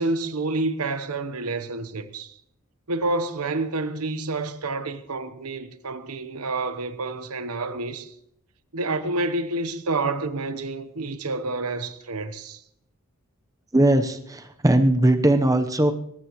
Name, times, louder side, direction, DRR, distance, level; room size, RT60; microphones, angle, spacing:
voice 1, 0.0-2.3 2.9-8.1 8.7-12.6, right 2 dB, 85° right, 1.1 m, -28 dB
voice 2, 13.7-15.9, right 1 dB, 15° right, 0.9 m, -19 dB
21.0 x 19.5 x 3.1 m
head